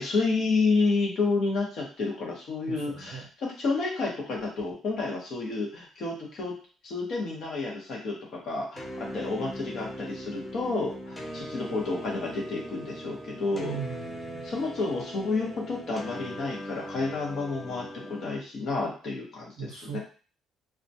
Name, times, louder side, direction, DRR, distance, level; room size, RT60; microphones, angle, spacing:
voice 1, 0.0-6.5 6.8-13.8 14.4-20.0, left 3 dB, 45° left, -1 dB, 0.8 m, -30 dB
voice 2, 2.6-3.3 13.5-14.5 19.6-20.0, right 7 dB, 75° right, 1 dB, 0.6 m, -39 dB
sound 1, 8.8-18.4, equal, 10° left, 0.4 m, -40 dB
2.2 x 2.1 x 2.7 m, 0.38 s
cardioid pair, 170°, 0 cm